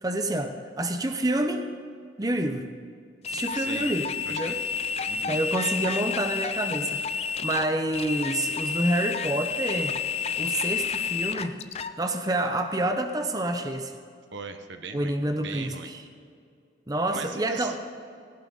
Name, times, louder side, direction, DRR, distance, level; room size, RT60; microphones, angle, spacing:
voice 1, 0.0-1.7 2.2-2.7 3.3-4.6 5.0-7.0 7.4-10.0 10.4-11.6 12.0-13.9 14.9-16.0 16.9-17.8, right 1 dB, 20° right, 6 dB, 0.8 m, -28 dB
sound 1, 3.2-11.9, left 6 dB, 35° left, 0.5 m, -30 dB
voice 2, 3.5-3.9 4.3-4.6 5.1-5.4 14.3-15.1 15.4-15.9 17.1-17.8, right 4 dB, 80° right, 7 dB, 1.2 m, -38 dB
18.0 x 16.0 x 4.0 m, 2.3 s
head